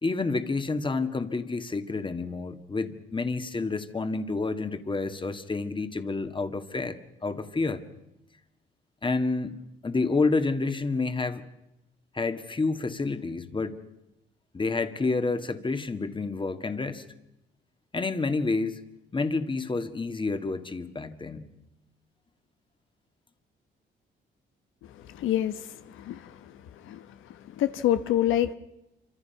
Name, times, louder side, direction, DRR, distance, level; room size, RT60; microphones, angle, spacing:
voice 1, 0.0-7.8 9.0-9.6 9.8-11.4 12.1-13.8 14.5-17.0 17.9-18.8 19.1-21.5, left 3 dB, 25° left, 9 dB, 2.0 m, -29 dB
voice 2, 25.1-26.4 26.9-27.1 27.6-28.5, left 12 dB, 85° left, 10 dB, 1.2 m, -27 dB
27.0 x 26.0 x 5.8 m, 0.86 s
cardioid pair, 90°, 20 cm